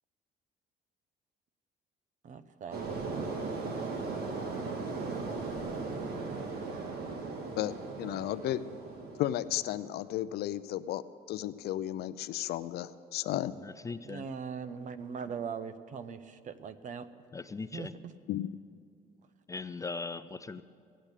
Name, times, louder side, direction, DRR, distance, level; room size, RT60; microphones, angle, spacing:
voice 1, 2.2-2.8 14.0-17.1 17.7-17.9, right 6 dB, 50° right, 13 dB, 0.8 m, -40 dB
sound 1, 2.7-9.9, right 3 dB, 70° right, 1.8 m, -37 dB
voice 2, 7.6-8.6 9.2-11.0 11.3-13.5 18.3-18.5, left 13 dB, 70° left, 14 dB, 0.5 m, -33 dB
voice 3, 13.6-14.3 17.3-17.9 19.5-20.6, left 4 dB, 20° left, 13 dB, 0.3 m, -39 dB
16.5 x 8.8 x 8.2 m, 2.3 s
cardioid pair, 110°, 17 cm